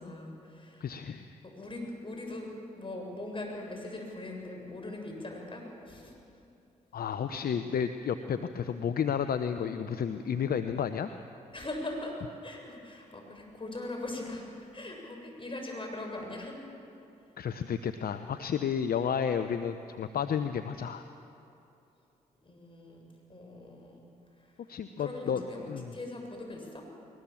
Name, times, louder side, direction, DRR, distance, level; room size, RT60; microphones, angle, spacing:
voice 1, 0.0-0.9 1.5-6.1 11.5-12.1 12.4-16.6 22.4-24.1 24.4-24.6 25.0-26.8, left 2 dB, 30° left, 1 dB, 7.0 m, -41 dB
voice 2, 0.8-1.3 6.9-11.1 17.4-21.0 24.7-25.4 25.7-25.9, left 7 dB, 60° left, 9 dB, 0.8 m, -31 dB
21.5 x 20.0 x 7.3 m, 2.7 s
hypercardioid pair, 40°, 18 cm